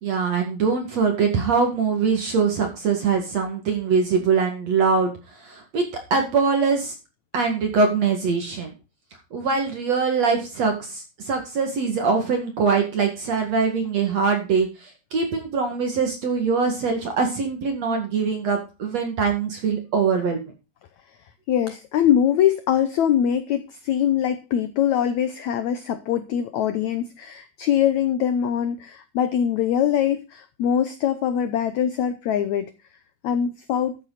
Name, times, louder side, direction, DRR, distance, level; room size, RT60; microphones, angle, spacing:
voice 1, 0.0-5.1 5.4-5.8 6.1-6.9 7.3-8.7 9.3-20.5, right 5 dB, 50° right, 4 dB, 2.8 m, -23 dB
voice 2, 21.5-32.7 33.2-34.0, left 9 dB, 85° left, 11 dB, 1.6 m, -23 dB
13.5 x 8.5 x 4.1 m, 0.30 s
omnidirectional pair, 4.4 m